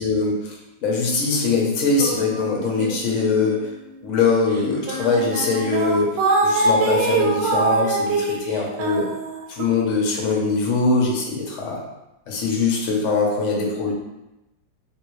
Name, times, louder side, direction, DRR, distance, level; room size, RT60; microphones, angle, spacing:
voice 1, 0.0-3.7 4.0-6.1 6.4-9.1 9.5-11.8 12.3-13.9, left 4 dB, 60° left, -2 dB, 0.8 m, -22 dB
sound 1, 2.0-3.4 3.7-4.0 4.6-4.7 4.9-9.6, right 3 dB, 75° right, 1.2 m, -23 dB
3.3 x 2.6 x 3.1 m, 0.95 s
omnidirectional pair, 2.1 m